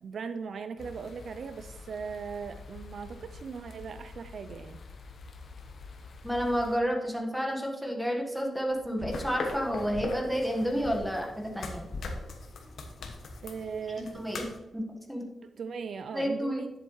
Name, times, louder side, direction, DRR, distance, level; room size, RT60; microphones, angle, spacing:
voice 1, 0.0-4.8 13.4-14.2 15.4-16.7, right 5 dB, 70° right, 10 dB, 0.4 m, -39 dB
sound 1, 0.8-6.8, left 4 dB, 60° left, 1.0 m, -47 dB
voice 2, 6.2-11.9 14.0-14.5 14.7-15.3 16.1-16.7, equal, 5° right, 1 dB, 1.4 m, -30 dB
sound 2, 8.7-14.1, left 3 dB, 40° left, 0.6 m, -46 dB
sound 3, 9.1-14.6, left 3 dB, 80° left, 1.2 m, -40 dB
11.0 x 7.8 x 3.1 m, 1.1 s
wide cardioid pair, 130°, 0 cm